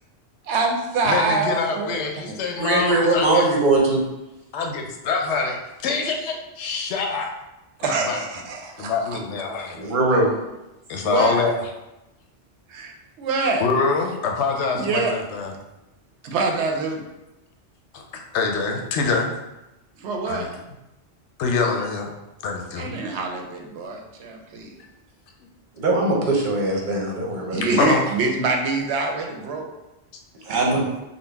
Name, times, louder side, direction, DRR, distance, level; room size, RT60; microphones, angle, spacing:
voice 1, 0.4-2.0 2.3-2.4 7.8-9.2 11.0-11.5 12.7-12.9 13.2-13.6 14.7-15.1 16.2-17.0 20.0-20.5 22.8-24.8 27.5-29.7 30.5-30.6, right 3 dB, 85° right, 2 dB, 0.9 m, -25 dB
voice 2, 1.0-3.4 4.5-7.3 7.8-8.2 8.8-9.8 10.9-11.5 13.6-15.5 17.9-18.0 18.3-19.3 20.3-20.5 21.4-22.1 22.4-22.9 27.8-28.1, left 4 dB, 85° left, 3 dB, 0.9 m, -25 dB
voice 3, 2.6-4.0 9.7-10.3 25.8-27.6 30.4-30.9, right 2 dB, 50° right, -2 dB, 0.8 m, -20 dB
3.8 x 2.0 x 3.4 m, 0.96 s
omnidirectional pair, 1.1 m